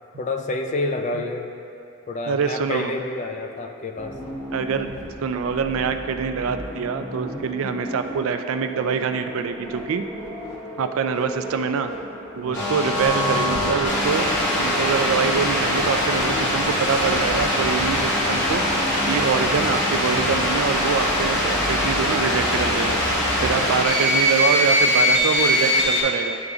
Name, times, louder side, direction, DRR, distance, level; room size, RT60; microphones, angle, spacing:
voice 1, 0.2-1.5 2.1-4.2 12.5-12.7, left 2 dB, 35° left, 5 dB, 0.3 m, -28 dB
voice 2, 2.3-2.9 4.5-4.9 5.2-10.0 10.8-11.9 12.4-14.3 14.6-26.4, right 6 dB, 65° right, 8 dB, 0.3 m, -25 dB
sound 1, 4.0-23.5, equal, 15° left, 0.9 m, -36 dB
sound 2, 12.5-26.0, equal, 50° left, 1.0 m, -22 dB
11.0 x 3.8 x 2.4 m, 2.6 s
head